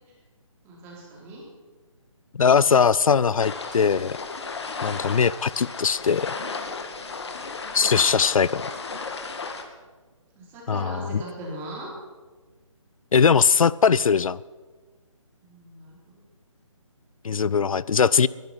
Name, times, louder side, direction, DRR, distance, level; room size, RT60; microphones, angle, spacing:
voice 1, 0.6-1.4 10.4-11.9 15.4-16.2, right 1 dB, 15° right, -3 dB, 3.7 m, -39 dB
voice 2, 2.4-4.2 4.8-6.3 7.7-8.7 10.7-11.2 13.1-14.4 17.2-18.3, left 6 dB, 85° left, 21 dB, 0.5 m, -20 dB
sound 1, 3.4-9.6, left 4 dB, 55° left, 2.1 m, -34 dB
23.0 x 11.0 x 5.7 m, 1.3 s
hypercardioid pair, 165°, 17 cm